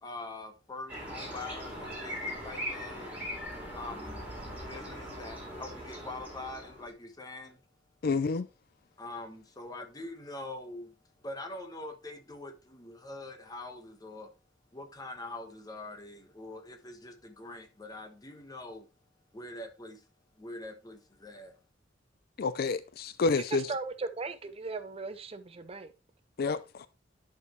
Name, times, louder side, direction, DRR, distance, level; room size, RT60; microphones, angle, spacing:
voice 1, 0.0-3.2 3.7-4.2 4.6-7.6 9.0-14.3 14.7-18.9 19.3-20.0 20.4-21.6, left 2 dB, 20° left, 1.2 m, -44 dB
sound 1, 0.9-6.9, equal, 10° right, 3.5 m, -40 dB
voice 2, 8.0-8.5 22.4-23.6 26.4-26.9, left 4 dB, 55° left, 0.4 m, -29 dB
voice 3, 23.5-25.9, right 3 dB, 35° right, 0.6 m, -37 dB
11.0 x 4.6 x 3.1 m
head